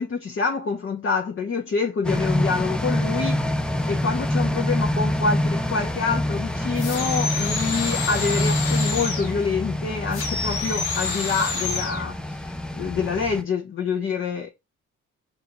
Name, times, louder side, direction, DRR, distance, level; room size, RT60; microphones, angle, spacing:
voice 1, 0.0-3.4 3.9-14.5, left 5 dB, 30° left, 0.8 m, -26 dB
sound 1, 2.0-13.4, left 1 dB, ahead, 0.4 m, -26 dB
sound 2, 6.8-9.4 10.1-12.0, left 4 dB, 75° left, 1.1 m, -28 dB
5.4 x 2.5 x 2.8 m
hypercardioid pair, 45°, 39 cm